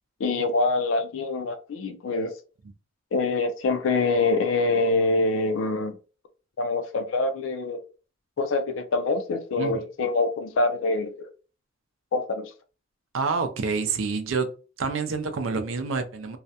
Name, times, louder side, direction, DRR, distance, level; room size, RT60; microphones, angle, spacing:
voice 1, 0.2-2.3 3.1-6.0 6.6-7.8 8.4-11.3 12.1-12.5, left 3 dB, 80° left, 0.4 m, -25 dB
voice 2, 13.1-14.5 14.8-16.4, right 4 dB, 85° right, 0.5 m, -27 dB
2.3 x 2.1 x 2.7 m
head